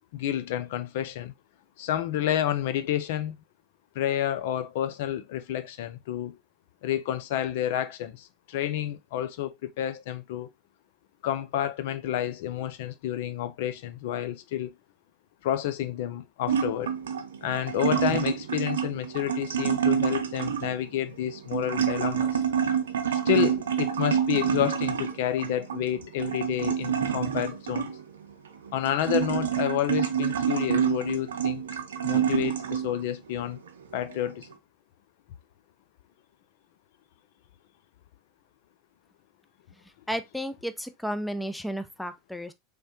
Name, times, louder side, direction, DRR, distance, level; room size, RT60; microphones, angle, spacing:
voice 1, 0.1-1.3 1.8-3.4 4.0-6.4 6.8-10.5 11.2-14.7 15.4-16.9 17.4-22.4 23.3-27.9 28.7-31.6 32.0-33.6 33.9-34.5, left 11 dB, 70° left, 0.4 m, -29 dB
sound 1, 16.5-33.0 33.5-34.5, right 8 dB, 85° right, 0.5 m, -28 dB
voice 2, 40.1-42.5, equal, 5° left, 0.5 m, -33 dB
3.6 x 3.2 x 2.8 m
hypercardioid pair, 90°, 0 cm